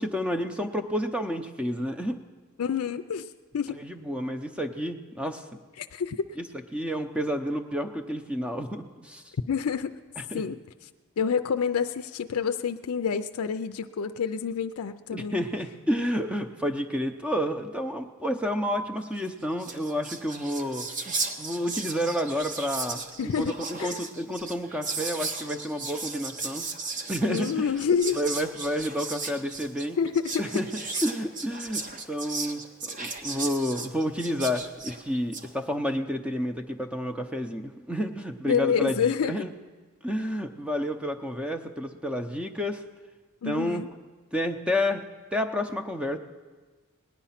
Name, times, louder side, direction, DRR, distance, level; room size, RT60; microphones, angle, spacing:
voice 1, 0.0-2.2 3.8-5.4 6.4-6.5 6.7-9.3 10.3-10.4 15.1-20.9 21.4-26.7 27.1-27.5 28.1-30.0 30.4-30.7 31.0-38.9 39.3-39.5 40.0-42.8 43.4-43.8 44.3-45.0 45.3-46.2, equal, 5° right, 7 dB, 0.6 m, -30 dB
voice 2, 2.6-3.8 5.8-6.2 9.5-10.0 10.3-10.6 11.2-15.4 23.2-23.5 23.8-24.0 27.3-28.2 30.0-30.4 38.4-39.3 43.4-43.9, left 6 dB, 85° left, 8 dB, 0.4 m, -28 dB
Whispering, 19.3-19.4 19.5-35.5, right 4 dB, 35° right, 0.8 m, -36 dB
19.0 x 10.0 x 5.8 m, 1.4 s
head